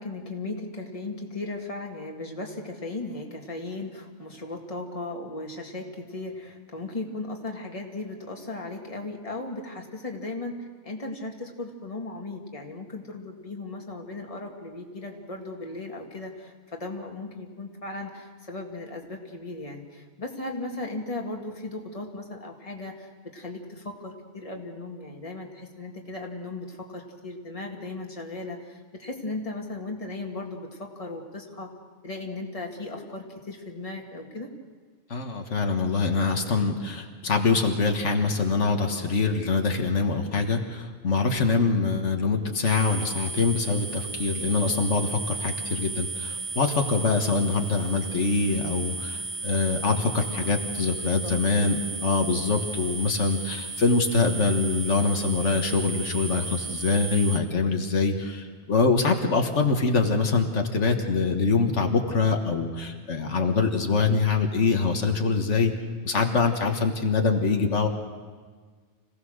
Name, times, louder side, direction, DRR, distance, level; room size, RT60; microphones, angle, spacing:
voice 1, 0.0-31.7 32.0-34.5 51.6-51.7 52.8-52.9, left 2 dB, 30° left, 1 dB, 2.2 m, -37 dB
voice 2, 35.1-65.7 66.0-67.9, left 4 dB, 85° left, 4 dB, 1.8 m, -24 dB
sound 1, 42.6-57.4, right 3 dB, 55° right, 1.3 m, -35 dB
26.0 x 17.0 x 6.5 m, 1.5 s
omnidirectional pair, 1.2 m